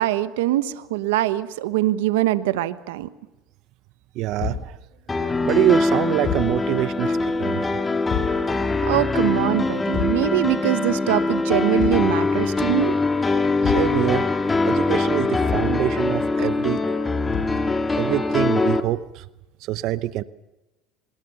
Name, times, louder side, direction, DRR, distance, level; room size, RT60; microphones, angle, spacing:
voice 1, 0.0-3.1 8.9-12.9, right 15 dB, 85° right, 13 dB, 1.2 m, -23 dB
voice 2, 4.1-4.8 5.2-7.8 13.3-16.8 17.9-19.3 19.6-20.2, right 15 dB, 60° right, 15 dB, 0.9 m, -25 dB
Thump thud, 4.4-4.7 6.2-6.6 8.1-8.4 9.9-10.3 11.8-12.1 13.6-14.0 15.5-15.8 17.3-17.7, left 7 dB, 50° left, 7.8 m, -28 dB
sound 1, 5.1-18.8, left 3 dB, 20° left, 1.9 m, -22 dB
25.5 x 21.0 x 7.1 m, 1.0 s
supercardioid pair, 100°, 0 cm